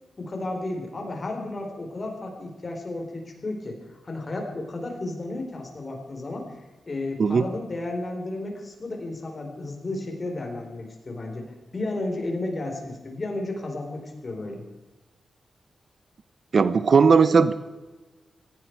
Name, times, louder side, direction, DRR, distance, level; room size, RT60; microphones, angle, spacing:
voice 1, 0.2-6.5 6.9-14.6, left 2 dB, 40° left, 2 dB, 4.4 m, -33 dB
voice 2, 16.5-17.5, right 5 dB, 60° right, 14 dB, 0.8 m, -17 dB
17.5 x 16.0 x 4.8 m, 1.2 s
cardioid pair, 80°, 0 cm